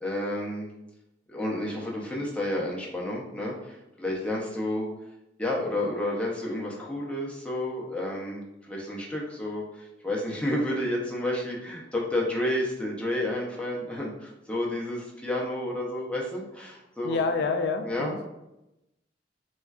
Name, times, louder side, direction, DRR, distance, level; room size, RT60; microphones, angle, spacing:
voice 1, 0.0-0.7 1.3-4.9 5.4-17.2 17.9-18.1, left 1 dB, 5° left, -3 dB, 0.5 m, -31 dB
voice 2, 17.0-18.3, left 4 dB, 65° left, 7 dB, 0.3 m, -28 dB
3.6 x 2.2 x 2.3 m, 0.91 s
head